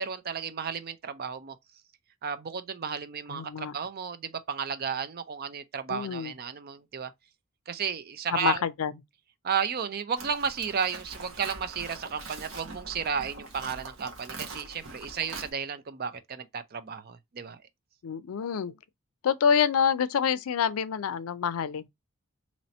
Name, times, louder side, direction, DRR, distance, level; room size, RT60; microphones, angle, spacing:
voice 1, 0.0-1.6 2.2-7.1 7.7-8.6 9.4-17.6, right 6 dB, 45° right, 0.5 m, -33 dB
voice 2, 3.3-3.7 5.9-6.3 8.3-8.9 18.0-18.7 19.2-21.9, left 7 dB, 85° left, 0.4 m, -27 dB
Livestock farm animals working animals, 10.2-15.5, right 3 dB, 70° right, 1.2 m, -43 dB
3.0 x 2.8 x 4.1 m
head